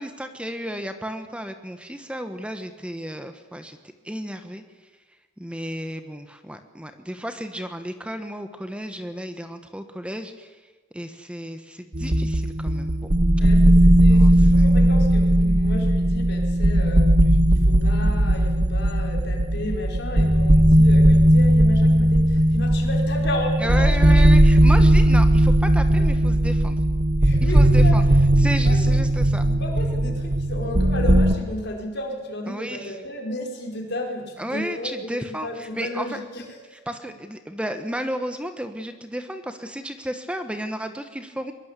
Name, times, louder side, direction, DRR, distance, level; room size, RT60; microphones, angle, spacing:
voice 1, 0.0-3.8 4.0-4.9 5.4-13.0 14.1-14.7 23.6-26.8 27.4-28.0 28.4-29.4 32.5-33.0 34.4-36.2 36.9-41.5, equal, 5° right, 7 dB, 1.3 m, -33 dB
sound 1, 11.9-31.3, right 1 dB, 40° right, 1.2 m, -17 dB
voice 2, 13.4-17.2 17.5-24.2 26.0-26.1 27.2-29.0 29.4-36.8, left 1 dB, 60° left, 1 dB, 5.2 m, -33 dB
22.5 x 22.5 x 8.4 m, 1.3 s
head